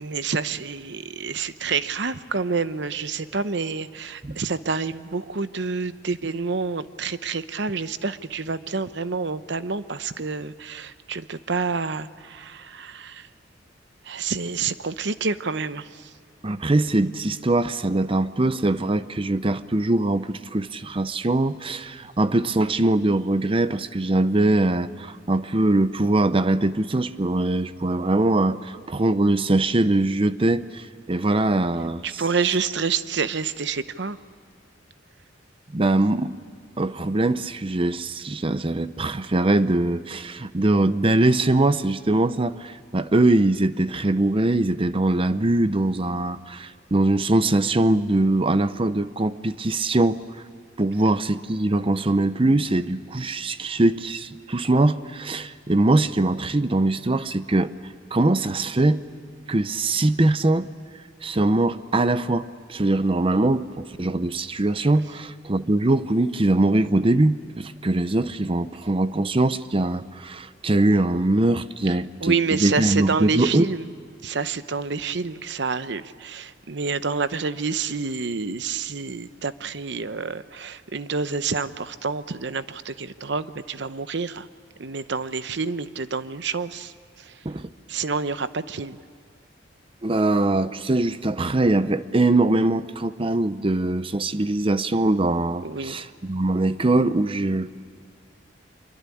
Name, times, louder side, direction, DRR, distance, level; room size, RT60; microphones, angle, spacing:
voice 1, 0.0-13.3 14.0-16.2 32.0-34.2 71.9-73.9 74.2-84.5 84.8-87.5 87.9-89.0 95.6-96.0, right 5 dB, 65° right, 13 dB, 0.8 m, -28 dB
voice 2, 16.4-32.0 35.7-36.3 36.8-50.2 50.8-57.7 58.1-59.0 59.5-60.7 61.2-73.6 87.4-87.7 90.0-97.7, right 2 dB, 30° right, 13 dB, 0.7 m, -22 dB
25.5 x 23.0 x 8.5 m, 2.2 s
head